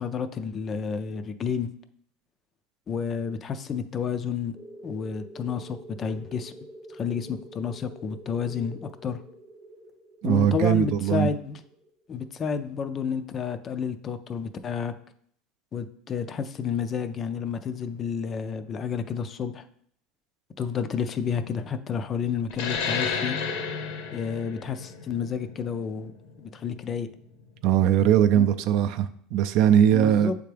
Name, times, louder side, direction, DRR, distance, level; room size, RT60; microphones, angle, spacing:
voice 1, 0.0-1.7 2.9-4.6 4.8-6.5 6.9-9.2 10.2-11.6 12.1-14.9 15.7-19.6 20.6-23.4 24.1-26.1 26.4-27.1 28.3-28.6 29.9-30.3, left 6 dB, 25° left, 10 dB, 0.3 m, -30 dB
sound 1, 4.5-12.9, right 1 dB, 15° right, 0.6 m, -47 dB
voice 2, 10.2-11.3 27.6-30.3, right 10 dB, 55° right, 11 dB, 0.4 m, -20 dB
sound 2, 22.5-27.6, left 6 dB, 70° left, 0.8 m, -32 dB
8.5 x 3.4 x 3.3 m, 0.65 s
supercardioid pair, 150°, 0 cm